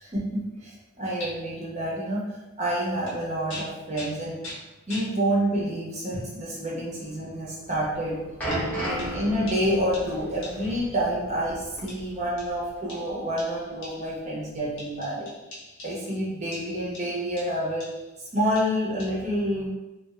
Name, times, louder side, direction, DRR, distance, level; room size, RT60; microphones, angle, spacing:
voice 1, 0.1-4.4 4.9-8.2 8.7-15.3 15.8-17.9 18.2-19.7, equal, 35° right, -5 dB, 0.8 m, -28 dB
sound 1, 1.2-1.3 3.0-3.2 3.5-5.2 6.1-6.4 7.2-7.3 8.5-10.9 11.9-14.3 14.8-16.2 16.5-18.1 18.6-19.1, left 1 dB, 70° left, 1.0 m, -43 dB
sound 2, 7.9-12.7 12.9-13.1 13.8-13.9, right 1 dB, 10° left, 0.9 m, -34 dB
2.6 x 2.4 x 3.1 m, 1.1 s
head